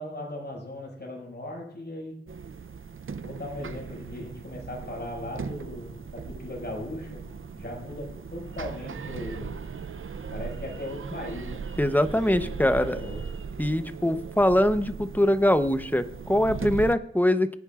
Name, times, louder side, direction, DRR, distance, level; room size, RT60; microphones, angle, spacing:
voice 1, 0.0-2.1 3.2-7.2 7.5-9.6 10.3-11.6 12.0-13.2, left 1 dB, 55° left, -2 dB, 5.9 m, -38 dB
sound 1, 2.3-16.9, right 5 dB, 75° right, 0.6 m, -38 dB
voice 2, 11.8-13.0 13.6-17.6, left 1 dB, 10° left, 10 dB, 0.9 m, -23 dB
24.0 x 9.9 x 2.5 m, 0.73 s
wide cardioid pair, 55°, 21 cm